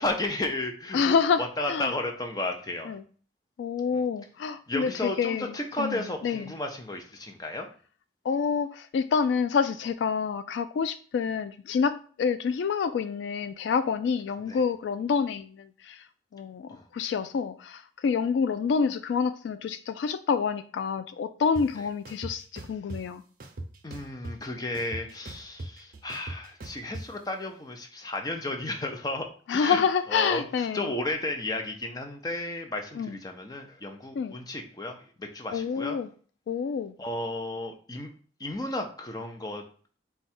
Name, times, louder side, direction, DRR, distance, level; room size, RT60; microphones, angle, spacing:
voice 1, 0.0-2.9 3.9-4.0 4.7-7.7 14.5-14.6 16.7-16.8 21.8-21.9 23.8-29.3 29.5-29.8 30.1-36.0 37.0-38.1 38.4-39.6, left 2 dB, 20° left, 0.6 m, -33 dB
voice 2, 0.9-1.4 1.7-1.9 2.9-3.0 3.6-6.5 8.2-16.0 16.3-23.2 29.5-30.9 33.0-33.2 34.2-34.4 35.5-36.1 36.5-36.9, left 6 dB, 80° left, 0.3 m, -28 dB
sound 1, 21.5-21.6 22.0-23.0 23.4-24.5 24.7-27.0, right 1 dB, 50° right, 0.6 m, -39 dB
4.5 x 2.3 x 4.1 m
head